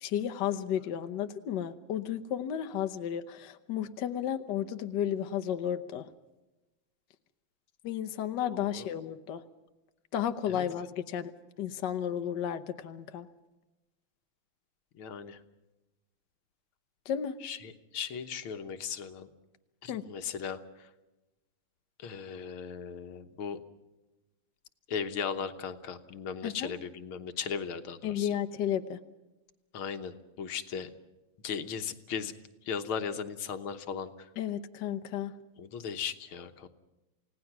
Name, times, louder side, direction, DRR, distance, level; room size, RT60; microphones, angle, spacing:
voice 1, 0.0-6.1 7.8-9.4 10.1-11.3 11.6-13.3 17.1-17.4 19.9-20.0 26.4-26.7 28.0-29.0 34.4-35.3, left 9 dB, 65° left, 8 dB, 1.4 m, -33 dB
voice 2, 8.5-8.9 10.5-10.6 15.0-15.4 17.4-19.3 19.8-20.9 22.0-23.6 24.9-28.3 29.7-30.9 31.4-32.3 32.6-34.3 35.6-36.7, left 7 dB, 80° left, 8 dB, 2.0 m, -37 dB
29.0 x 17.5 x 6.0 m, 1.1 s
omnidirectional pair, 2.3 m